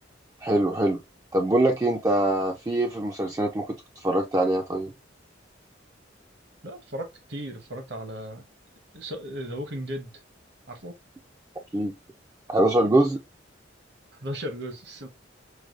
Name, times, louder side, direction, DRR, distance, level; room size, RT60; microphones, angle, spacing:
voice 1, 0.4-1.0 1.3-4.9 11.7-11.9 12.5-13.2, right 1 dB, 15° right, 0.3 m, -23 dB
voice 2, 6.6-8.4 8.9-10.1 10.7-10.9 14.2-15.1, equal, 60° right, 0.9 m, -36 dB
4.6 x 2.2 x 2.3 m
head